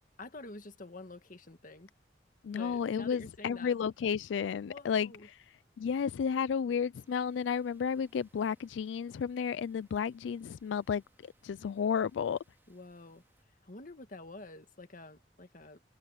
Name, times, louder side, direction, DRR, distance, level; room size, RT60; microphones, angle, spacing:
voice 1, 0.2-1.9 2.5-3.7 4.6-5.3 12.7-13.2 13.6-15.8, left 2 dB, 50° left, 1.8 m, -48 dB
voice 2, 2.4-5.4 5.8-12.4, left 7 dB, 90° left, 0.3 m, -32 dB
sound 1, 6.9-13.4, right 1 dB, 10° right, 5.0 m, -71 dB
head